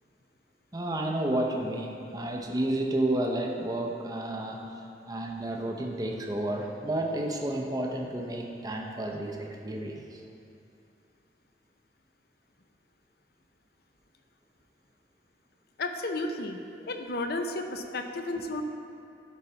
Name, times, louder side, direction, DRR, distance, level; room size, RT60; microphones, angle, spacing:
voice 1, 0.7-10.2, right 1 dB, 20° right, 1 dB, 0.6 m, -31 dB
voice 2, 15.8-16.6 16.9-18.6, left 2 dB, 55° left, 5 dB, 0.6 m, -32 dB
11.5 x 4.0 x 4.5 m, 2.6 s
head